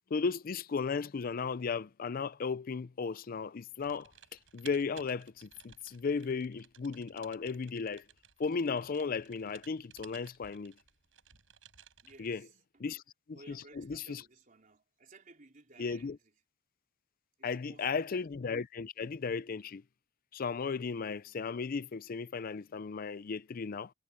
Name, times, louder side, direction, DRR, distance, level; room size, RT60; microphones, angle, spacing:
voice 1, 0.1-4.1 4.5-8.0 8.4-10.7 12.2-12.4 12.8-13.0 13.9-14.0 15.8-16.1 17.4-19.8 20.3-23.9, left 5 dB, 50° left, 0.5 m, -35 dB
Typing, 3.8-12.4, right 9 dB, 85° right, 6.3 m, -58 dB
voice 2, 12.0-13.0 13.3-16.4 17.4-18.1, right 3 dB, 45° right, 3.8 m, -58 dB
head